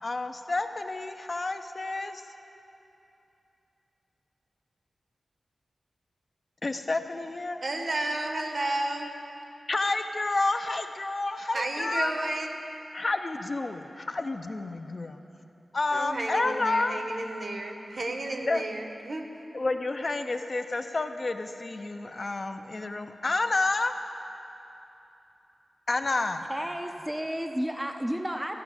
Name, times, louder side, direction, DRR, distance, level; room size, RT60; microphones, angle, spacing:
voice 1, 0.0-2.2 6.6-7.6 9.7-12.3 12.9-15.2 15.7-17.0 18.5-18.6 19.5-23.9 25.9-26.5, left 2 dB, 40° left, 7 dB, 0.5 m, -30 dB
voice 2, 7.6-9.1 11.5-12.5 15.9-19.2, right 2 dB, 55° right, 3 dB, 1.1 m, -32 dB
voice 3, 26.5-28.6, equal, 10° right, 4 dB, 0.5 m, -32 dB
14.5 x 5.9 x 8.8 m, 2.9 s
wide cardioid pair, 115°, 0 cm